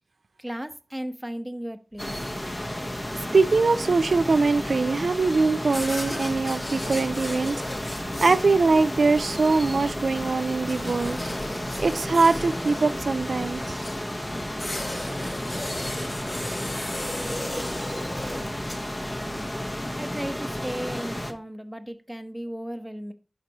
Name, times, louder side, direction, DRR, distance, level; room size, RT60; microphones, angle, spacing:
voice 1, 0.4-2.3 19.9-23.1, equal, 10° right, 0.9 m, -35 dB
sound 1, 2.0-21.3, left 1 dB, 25° left, 1.0 m, -32 dB
voice 2, 3.3-7.6 8.2-11.3 11.8-13.8, right 3 dB, 85° right, 0.3 m, -22 dB
sound 2, 5.6-19.5, left 1 dB, 45° left, 1.8 m, -37 dB
11.0 x 4.1 x 2.9 m
wide cardioid pair, 45°, 0 cm